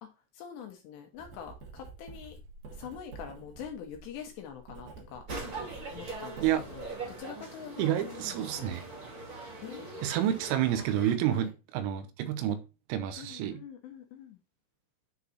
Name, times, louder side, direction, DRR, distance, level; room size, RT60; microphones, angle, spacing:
voice 1, 0.3-2.4 2.7-5.3 5.9-8.8 9.6-10.5 11.3-11.5 13.2-14.4, left 8 dB, 75° left, 2.7 m, -45 dB
Writing, 1.1-7.2, right 4 dB, 55° right, 3.1 m, -48 dB
sound 1, 5.3-11.1, right 3 dB, 35° right, 2.2 m, -42 dB
voice 2, 7.8-8.9 10.0-12.6 12.9-13.6, right 11 dB, 90° right, 3.6 m, -29 dB
9.3 x 4.0 x 4.0 m
omnidirectional pair, 5.8 m